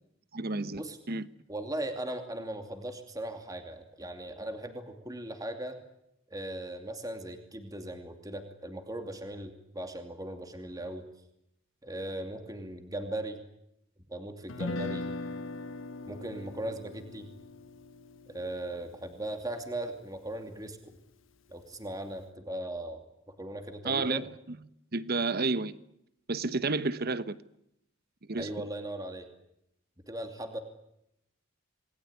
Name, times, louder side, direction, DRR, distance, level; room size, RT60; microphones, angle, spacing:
voice 1, 0.3-0.8 1.1-1.3 23.8-24.6 24.9-25.7 26.3-27.4 28.3-28.5, right 3 dB, 50° right, 14 dB, 1.1 m, -30 dB
voice 2, 1.5-5.8 6.3-11.1 11.8-13.4 14.1-15.1 16.1-17.3 18.3-21.0 21.5-23.0 23.3-24.2 28.3-29.3 30.1-30.6, right 1 dB, 20° right, 5 dB, 2.6 m, -38 dB
Guitar, 14.5-20.6, left 2 dB, 70° left, 1.2 m, -41 dB
28.0 x 20.5 x 9.7 m, 0.80 s
head